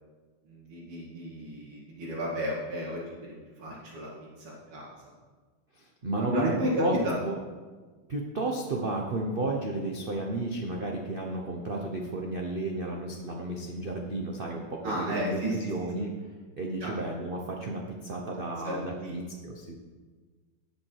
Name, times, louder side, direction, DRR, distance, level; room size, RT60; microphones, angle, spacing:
voice 1, 0.5-4.9 6.1-7.2 14.8-15.7 16.8-16.9 18.6-19.2, equal, 70° right, -9 dB, 3.1 m, -33 dB
voice 2, 5.8-6.5 6.8-7.0 7.2-7.4 8.1-16.1 16.6-19.8, right 2 dB, 45° right, 0 dB, 0.7 m, -33 dB
17.5 x 6.1 x 4.7 m, 1.4 s
omnidirectional pair, 2.4 m